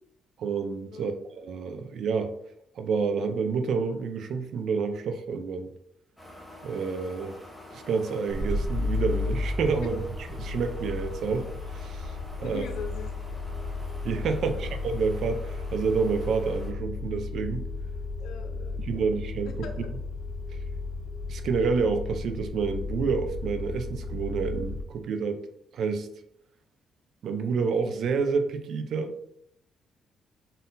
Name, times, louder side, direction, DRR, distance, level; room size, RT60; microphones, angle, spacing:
voice 1, 0.4-2.3 2.8-5.7 6.6-7.4 7.7-10.0 10.4-11.5 11.7-12.1 12.4-12.6 14.0-17.6 18.8-19.7 21.3-25.4 25.7-26.1 27.2-29.1, right 5 dB, 60° right, 8 dB, 0.4 m, -28 dB
sound 1, 6.2-16.7, left 1 dB, ahead, 0.8 m, -47 dB
sound 2, 8.3-24.8, left 3 dB, 35° right, 1.1 m, -34 dB
voice 2, 12.4-13.1 14.4-14.7 18.2-19.1 19.6-19.9, left 5 dB, 85° left, 5 dB, 0.6 m, -41 dB
4.0 x 3.8 x 2.6 m, 0.73 s
cardioid pair, 150°, 0 cm